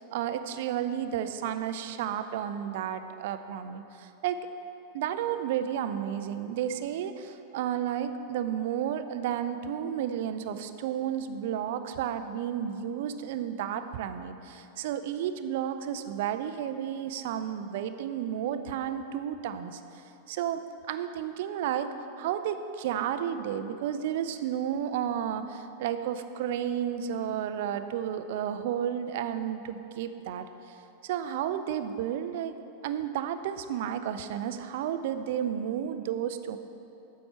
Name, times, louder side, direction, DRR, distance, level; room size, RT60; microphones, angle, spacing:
voice 1, 0.0-4.4 4.9-19.8 20.3-30.8 31.0-32.6 32.8-36.6, right 9 dB, 50° right, 10 dB, 0.4 m, -32 dB
9.3 x 7.1 x 4.5 m, 2.8 s
figure-of-eight pair, 90°, 0 cm